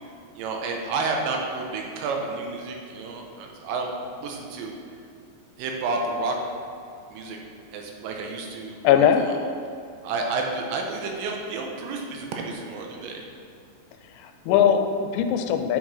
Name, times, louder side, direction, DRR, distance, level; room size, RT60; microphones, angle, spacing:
voice 1, 0.3-3.9 4.2-4.7 5.6-6.4 7.1-7.4 7.7-9.3 10.0-13.2, right 3 dB, 85° right, 1 dB, 3.0 m, -30 dB
voice 2, 8.8-9.2 14.2-15.8, left 9 dB, 90° left, 7 dB, 2.9 m, -20 dB
9.6 x 4.9 x 4.2 m, 2.5 s
omnidirectional pair, 5.2 m